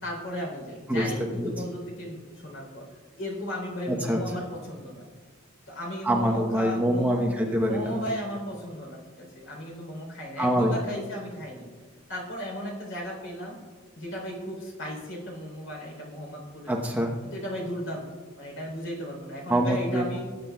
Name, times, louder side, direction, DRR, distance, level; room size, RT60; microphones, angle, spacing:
voice 1, 0.0-2.9 3.1-5.0 5.7-7.2 7.7-9.0 9.3-11.7 12.1-13.6 14.0-16.7 17.3-18.1 18.4-20.2, equal, 70° left, -1 dB, 3.7 m, -35 dB
voice 2, 3.9-4.2 6.0-8.0 10.4-10.8 16.7-17.1 19.5-20.0, equal, 10° right, -1 dB, 0.9 m, -25 dB
18.5 x 9.1 x 2.3 m, 1.5 s
head